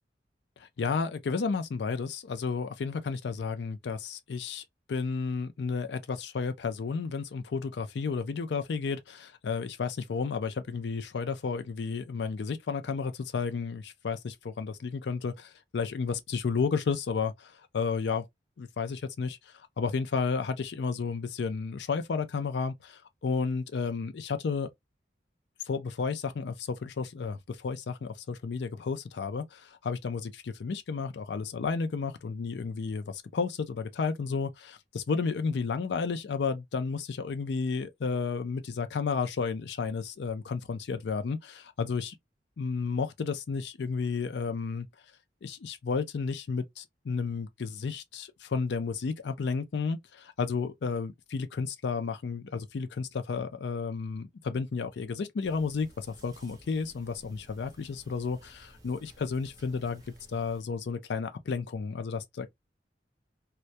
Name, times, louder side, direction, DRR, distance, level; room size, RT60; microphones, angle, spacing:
voice 1, 0.6-18.2 18.6-19.4 19.8-24.7 25.7-42.1 42.6-44.9 45.4-60.0 60.3-62.6, left 5 dB, 75° left, 0.4 m, -32 dB
sound 1, 55.4-60.6, right 1 dB, 20° right, 0.6 m, -55 dB
2.2 x 2.2 x 2.6 m
head